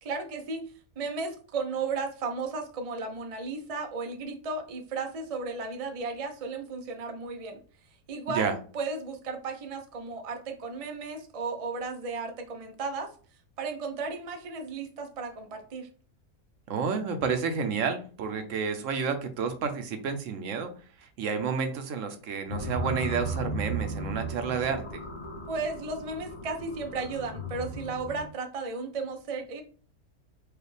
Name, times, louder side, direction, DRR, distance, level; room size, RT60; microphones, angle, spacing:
voice 1, 0.0-0.6 1.0-7.6 8.1-13.1 13.6-15.9 25.5-29.6, right 4 dB, 50° right, 4 dB, 0.4 m, -34 dB
voice 2, 16.7-20.7 21.2-25.0, right 6 dB, 65° right, 7 dB, 1.0 m, -30 dB
sound 1, 22.5-28.3, right 1 dB, 40° left, 0.4 m, -36 dB
4.8 x 2.4 x 3.2 m, 0.41 s
omnidirectional pair, 1.5 m